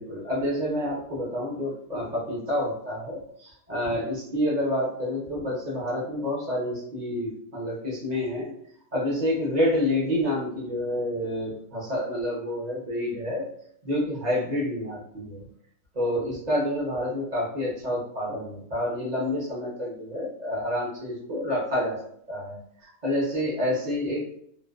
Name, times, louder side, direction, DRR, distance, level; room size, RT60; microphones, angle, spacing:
voice 1, 0.0-8.5 8.9-13.5 13.8-15.4 15.9-22.0 22.3-24.2, left 1 dB, 40° right, -4 dB, 0.6 m, -28 dB
2.5 x 2.1 x 2.3 m, 0.66 s
omnidirectional pair, 1.4 m